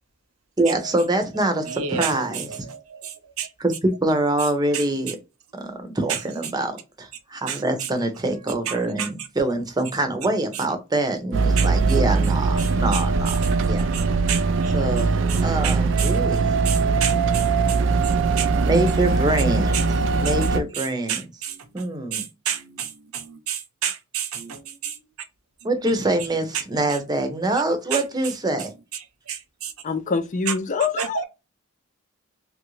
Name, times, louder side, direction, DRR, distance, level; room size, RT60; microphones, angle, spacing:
voice 1, 0.6-2.5 3.6-5.2 5.5-13.4 13.7-13.8 14.7-16.5 18.6-19.8 20.2-21.2 21.7-22.3 25.6-28.7, right 2 dB, 20° right, 0.7 m, -25 dB
voice 2, 1.5-3.5 4.4-4.5 4.7-5.1 6.1-6.5 7.5-7.9 8.4-9.3 10.5-10.6 11.6-18.5 19.4-19.5 19.7-19.9 20.2-25.0 26.5-26.6 26.9-27.0 27.9-28.3 28.9-29.7 30.5-30.6 31.0-31.2, right 8 dB, 90° right, 0.7 m, -32 dB
sound 1, 11.3-20.6, right 4 dB, 65° right, 0.4 m, -21 dB
voice 3, 29.8-31.2, left 5 dB, 35° left, 0.5 m, -25 dB
3.1 x 2.5 x 3.1 m
head